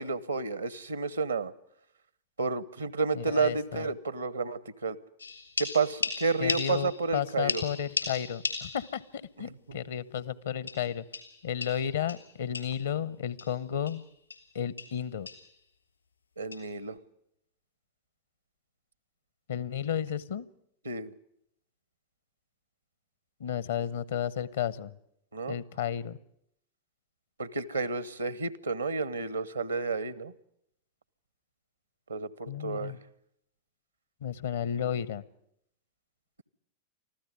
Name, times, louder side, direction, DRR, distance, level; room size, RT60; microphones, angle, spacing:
voice 1, 0.0-1.5 2.4-5.0 5.6-7.6 16.4-17.0 20.8-21.1 25.3-25.6 27.4-30.3 32.1-33.0, right 4 dB, 75° right, 20 dB, 1.0 m, -31 dB
voice 2, 3.1-3.9 6.4-11.0 11.4-14.0 14.5-15.3 19.5-20.5 23.4-25.0 25.5-26.2 32.5-33.0 34.2-35.2, left 9 dB, 65° left, 21 dB, 0.8 m, -33 dB
sound 1, 5.2-7.2 7.5-9.1 9.4-9.5 10.7-12.9 13.4-13.5 13.9-14.0 14.3-14.5 14.8-15.0 15.3-15.5 16.5-16.7, left 4 dB, 80° left, 3.3 m, -36 dB
25.0 x 15.0 x 9.6 m, 0.74 s
figure-of-eight pair, 90°, 0 cm